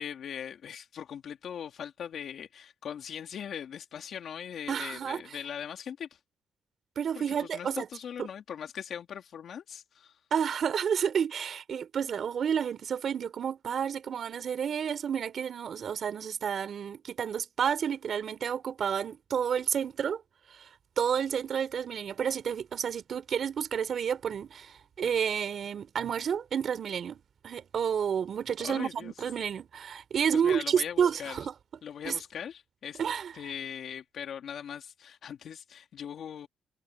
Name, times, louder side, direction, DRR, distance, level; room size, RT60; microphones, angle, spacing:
voice 1, 0.0-6.2 7.1-10.2 28.6-29.1 30.3-31.4 31.8-33.0 33.3-36.5, left 8 dB, 65° left, 2.9 m, -40 dB
voice 2, 4.7-5.2 7.0-7.9 10.3-20.2 21.0-31.5 32.0-32.2 33.0-33.3, right 7 dB, 55° right, 4.5 m, -30 dB
cardioid pair, 90°, 0 cm